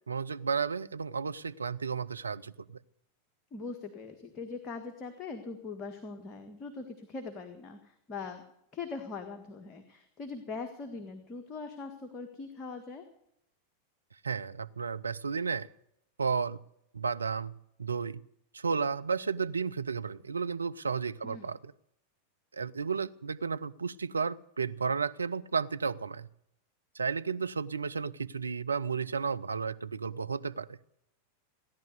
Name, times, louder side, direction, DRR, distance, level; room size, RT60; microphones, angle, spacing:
voice 1, 0.1-2.8 14.2-15.7 16.2-16.6 16.9-17.5 17.8-18.2 18.5-21.7 22.5-26.3 26.9-30.8, right 5 dB, 75° right, 12 dB, 0.5 m, -33 dB
voice 2, 3.5-8.4 8.7-13.1 21.2-21.5, left 4 dB, 25° left, 5 dB, 1.7 m, -41 dB
16.5 x 10.5 x 8.0 m, 0.76 s
figure-of-eight pair, 90°, 0 cm